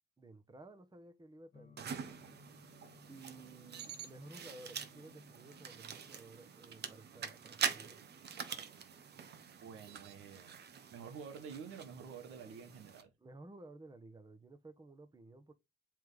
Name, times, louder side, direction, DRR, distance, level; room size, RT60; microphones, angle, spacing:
voice 1, 0.2-2.1 3.1-8.0 13.2-15.5, right 2 dB, 20° right, 1.2 m, -55 dB
sound 1, 1.5-11.3, left 6 dB, 30° left, 1.6 m, -66 dB
sound 2, 1.8-13.0, right 7 dB, 55° right, 1.1 m, -45 dB
voice 2, 9.6-10.6 10.9-13.1, right 6 dB, 90° right, 1.4 m, -49 dB
7.6 x 3.6 x 3.9 m
cardioid pair, 90°, 20 cm